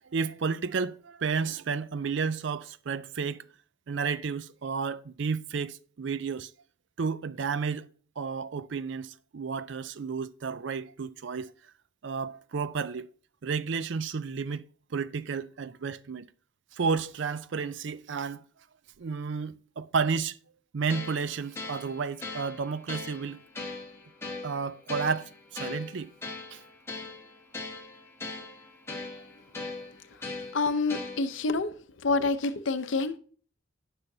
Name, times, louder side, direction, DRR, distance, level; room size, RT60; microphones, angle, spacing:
voice 1, 0.1-3.4 3.9-6.5 7.0-7.9 8.2-11.5 12.0-13.1 13.4-14.6 14.9-16.2 16.7-18.4 19.0-20.4 20.7-23.4 24.4-26.1 26.5-26.6, right 5 dB, 60° right, 0.4 m, -32 dB
sound 1, 20.9-31.5, left 3 dB, 10° left, 1.2 m, -40 dB
voice 2, 30.5-31.7 32.0-33.2, left 3 dB, 65° left, 0.7 m, -27 dB
16.5 x 5.6 x 2.7 m
head